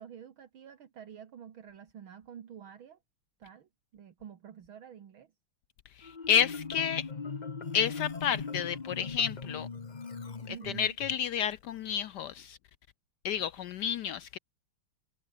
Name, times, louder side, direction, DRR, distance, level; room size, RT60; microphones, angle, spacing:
voice 1, 0.0-3.0 3.4-5.3 10.5-11.0, right 8 dB, 70° right, 2.3 m, -48 dB
voice 2, 6.0-7.1 7.7-9.7 10.5-12.6 13.2-14.4, left 8 dB, 70° left, 1.0 m, -30 dB
Marimba xylophone, 6.0-11.1, left 4 dB, 30° left, 0.8 m, -40 dB
omnidirectional pair, 2.4 m